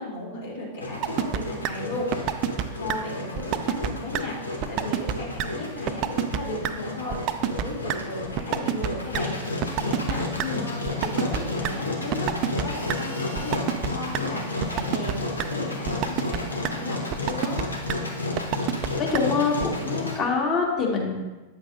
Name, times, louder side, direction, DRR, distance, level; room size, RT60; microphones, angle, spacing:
voice 1, 0.0-17.6, left 1 dB, 65° left, -5 dB, 2.6 m, -35 dB
Engine, 0.8-20.2, left 2 dB, 80° left, 0.9 m, -32 dB
sound 1, 1.0-1.4 1.6-1.7 2.1-2.6 2.9-3.0 3.4-3.9 4.1-4.2 4.6-5.1 5.4-5.5 5.9-6.4 6.6-6.7 7.1-7.6 7.9-8.0 8.4-8.9 9.1-9.2 9.6-10.5 10.9-11.7 12.1-12.6 12.9-13.0 13.4-13.9 14.1-14.2 14.6-15.1 15.4-15.5 15.9-16.4 16.6-16.7 17.1-17.6 17.9-18.0 18.4-18.9 19.1-19.2 19.6-19.7, right 12 dB, 40° right, 0.4 m, -26 dB
voice 2, 19.0-21.2, left 4 dB, 30° left, -1 dB, 1.7 m, -25 dB
8.8 x 7.3 x 2.6 m, 1.2 s
figure-of-eight pair, 90°, 0 cm